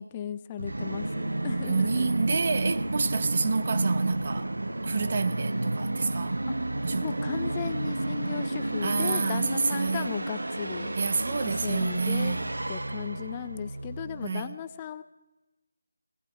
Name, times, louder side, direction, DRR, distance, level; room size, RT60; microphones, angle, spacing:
voice 1, 0.0-2.1 3.4-3.5 7.0-10.9 11.4-12.4 12.7-15.0, left 10 dB, 20° left, 0.4 m, -36 dB
Musical instrument, 0.6-14.3, right 2 dB, 85° right, 0.8 m, -31 dB
voice 2, 1.7-4.5 4.8-6.4 6.8-7.2 8.8-10.1 11.0-12.5 14.2-14.5, right 4 dB, 45° right, 0.9 m, -28 dB
17.0 x 16.0 x 5.0 m
figure-of-eight pair, 165°, 0 cm